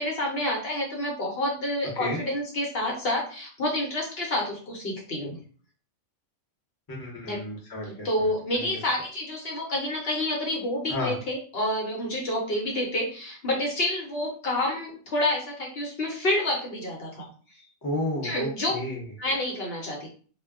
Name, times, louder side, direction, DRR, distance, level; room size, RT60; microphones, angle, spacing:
voice 1, 0.0-5.4 7.3-7.4 7.9-17.3 18.2-18.7 19.2-20.1, left 1 dB, 55° left, -1 dB, 1.0 m, -28 dB
voice 2, 6.9-8.8 10.9-11.2 17.8-19.0, left 1 dB, 20° left, -3 dB, 0.6 m, -32 dB
2.2 x 2.2 x 3.4 m, 0.42 s
omnidirectional pair, 1.3 m